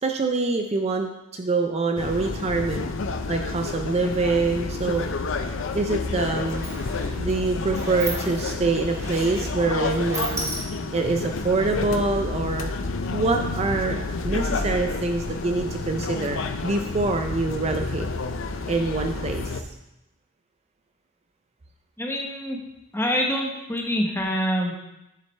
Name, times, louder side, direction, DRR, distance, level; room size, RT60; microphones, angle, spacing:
voice 1, 0.0-2.9 3.3-5.0 5.7-6.7 7.1-10.5 10.9-12.7 13.1-18.1 18.7-19.6, right 3 dB, 30° right, 4 dB, 0.4 m, -25 dB
sound 1, 2.0-19.6, left 3 dB, 70° left, 0.5 m, -30 dB
Sliding door, 5.8-5.9 6.2-11.1, right 1 dB, 15° right, 1.2 m, -36 dB
voice 2, 22.0-22.6 22.9-24.7, equal, 10° left, 0 dB, 1.0 m, -25 dB
7.5 x 7.4 x 3.3 m, 0.91 s
head